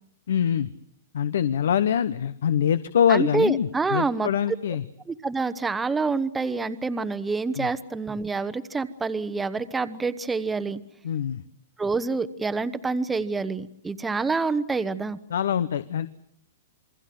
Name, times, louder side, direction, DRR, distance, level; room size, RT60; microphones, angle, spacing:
voice 1, 0.3-0.7 1.1-4.8 7.6-7.7 11.0-11.4 15.3-16.1, left 9 dB, 80° left, 15 dB, 1.0 m, -24 dB
voice 2, 3.1-4.3 5.1-10.8 11.8-15.2, right 4 dB, 10° right, 11 dB, 1.0 m, -27 dB
28.0 x 21.5 x 7.7 m, 0.69 s
hypercardioid pair, 145°, 0 cm